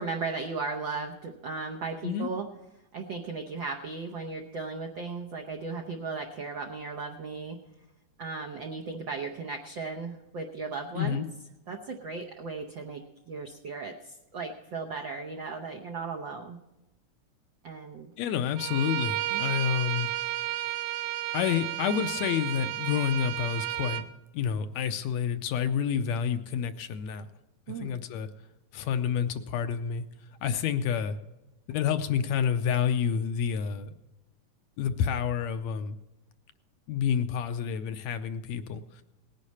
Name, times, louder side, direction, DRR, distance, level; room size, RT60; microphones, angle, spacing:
voice 1, 0.0-2.5 2.9-7.6 8.2-11.2 11.7-16.6 17.6-18.1 19.3-19.5 27.7-28.0, right 4 dB, 75° right, 2 dB, 1.1 m, -36 dB
voice 2, 11.0-11.3 18.2-20.1 21.3-24.0 24.3-27.3 27.8-28.3 28.7-30.1 30.4-31.2 31.7-33.9 34.8-36.0 36.9-39.0, left 8 dB, 80° left, 9 dB, 1.8 m, -29 dB
Bowed string instrument, 18.6-24.1, right 15 dB, 90° right, 2.3 m, -32 dB
18.5 x 9.8 x 4.2 m, 0.99 s
omnidirectional pair, 3.4 m